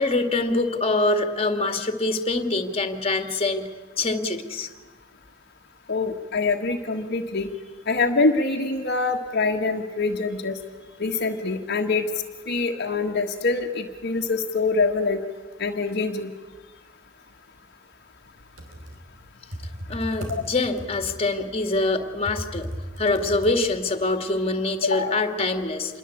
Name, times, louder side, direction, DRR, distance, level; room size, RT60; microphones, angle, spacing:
voice 1, 0.0-3.7 4.0-4.7 19.9-22.7 23.0-26.0, left 2 dB, 30° left, 8 dB, 2.1 m, -24 dB
voice 2, 5.9-7.5 7.9-10.6 11.0-12.1 12.5-15.2 15.6-16.3 20.3-20.4 24.8-25.2, left 3 dB, 55° left, 2 dB, 1.6 m, -24 dB
Computer keyboard, 18.4-24.0, equal, 80° right, 5.1 m, -37 dB
27.5 x 22.0 x 8.5 m, 1.3 s
head